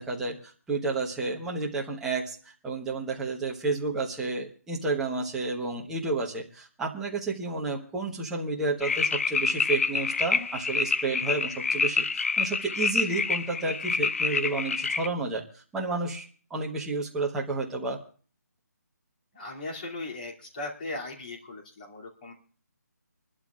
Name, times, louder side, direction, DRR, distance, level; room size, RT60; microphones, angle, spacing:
voice 1, 0.0-2.4 2.6-18.0, right 3 dB, 5° right, -3 dB, 1.1 m, -31 dB
sound 1, 8.8-15.1, left 5 dB, 45° left, 0.7 m, -27 dB
voice 2, 19.3-22.3, left 2 dB, 30° left, -2 dB, 2.8 m, -38 dB
26.0 x 12.5 x 2.5 m, 0.41 s
hypercardioid pair, 170°, 9 cm